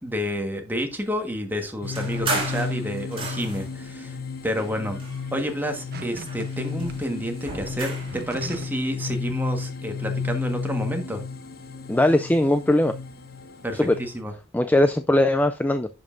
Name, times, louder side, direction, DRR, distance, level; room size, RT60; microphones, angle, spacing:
voice 1, 0.0-4.2 4.4-5.0 5.3-11.2 13.6-14.3, equal, 10° right, 1.5 m, -29 dB
sound 1, 1.8-14.2, left 5 dB, 55° left, 1.1 m, -33 dB
sound 2, 1.9-3.8 4.5-5.6 6.0-8.2, right 3 dB, 30° right, 2.4 m, -33 dB
sound 3, 5.9-6.5 6.9-7.0 7.8-8.8 9.1-9.4, right 2 dB, 55° right, 0.9 m, -39 dB
voice 2, 11.9-12.9 13.8-14.0 14.5-15.9, left 1 dB, 10° left, 0.4 m, -20 dB
10.5 x 5.4 x 2.6 m
head